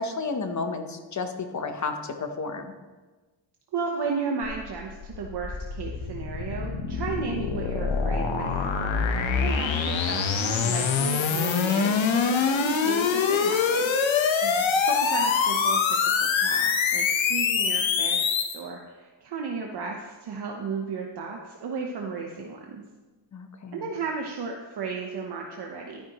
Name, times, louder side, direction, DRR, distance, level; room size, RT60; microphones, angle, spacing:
voice 1, 0.0-2.7 14.4-14.8 23.3-23.9, left 4 dB, 40° left, 6 dB, 0.9 m, -32 dB
voice 2, 3.7-9.1 9.4-13.8 14.8-18.3 18.5-22.8 23.7-26.1, right 5 dB, 55° right, 1 dB, 0.9 m, -34 dB
sound 1, 4.4-18.6, left 6 dB, 75° left, 1.0 m, -25 dB
12.0 x 10.5 x 3.0 m, 1.3 s
wide cardioid pair, 165°, 46 cm